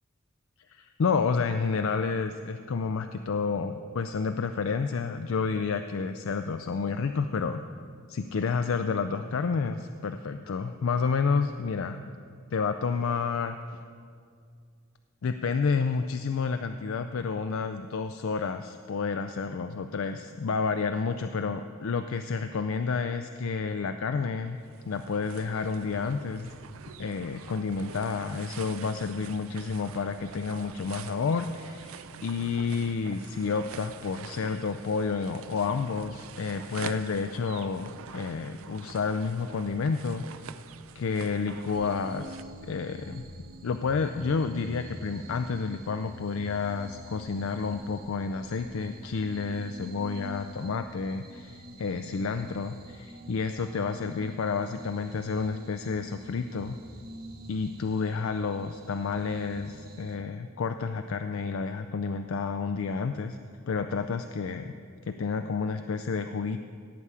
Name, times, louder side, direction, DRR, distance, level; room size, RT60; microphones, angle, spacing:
voice 1, 0.7-7.6 8.1-12.0 12.5-13.6 15.2-24.6 24.9-26.5 27.0-40.2 40.9-43.2 43.6-56.8 57.5-63.4 63.7-64.7 65.0-66.6, left 5 dB, 70° left, 8 dB, 0.4 m, -30 dB
sound 1, 24.5-42.4, right 6 dB, 70° right, 0.5 m, -46 dB
sound 2, 41.7-60.2, right 1 dB, 40° right, 1.0 m, -46 dB
16.5 x 8.4 x 4.8 m, 2.2 s
head